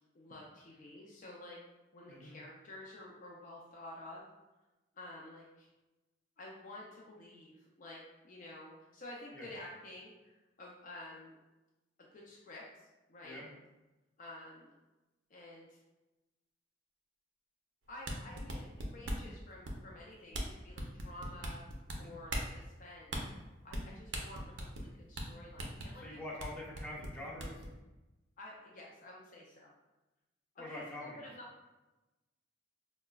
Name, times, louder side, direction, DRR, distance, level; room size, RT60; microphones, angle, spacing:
voice 1, 0.1-1.6 1.9-4.3 4.9-5.7 6.4-11.4 12.1-13.5 14.2-14.7 15.3-15.8 17.9-21.6 22.0-23.1 23.6-26.2 28.4-29.7 30.5-31.5, left 1 dB, 45° left, -3 dB, 0.4 m, -51 dB
sound 1, 17.9-19.3 19.6-20.0 20.3-20.5 20.8-22.0 22.3-22.5 23.1-23.2 23.7-23.9 24.1-24.9 25.2-25.3 25.6-25.9 26.4-26.5 26.7-27.7, right 1 dB, 75° right, 0.5 m, -38 dB
voice 2, 26.0-27.7 30.6-31.3, left 1 dB, 10° left, -6 dB, 0.7 m, -45 dB
4.6 x 2.1 x 2.2 m, 1.1 s
head